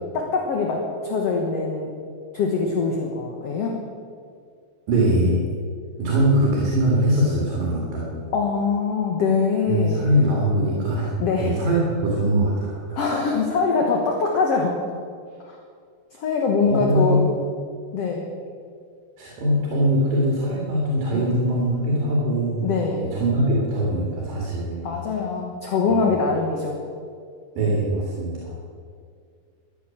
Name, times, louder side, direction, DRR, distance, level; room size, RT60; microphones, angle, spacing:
voice 1, 0.1-1.9 2.3-3.8 8.3-10.1 11.2-11.5 12.9-14.8 15.4-15.6 16.1-17.2 17.9-18.3 21.1-21.3 22.6-23.1 24.8-26.8, left 4 dB, 60° left, 1 dB, 1.8 m, -23 dB
voice 2, 4.9-5.4 6.0-8.2 9.7-11.1 11.4-13.0 16.7-17.2 19.2-24.9 26.0-26.1 27.6-28.5, right 1 dB, 75° right, -4 dB, 4.0 m, -22 dB
13.5 x 9.9 x 7.3 m, 2.2 s
omnidirectional pair, 4.0 m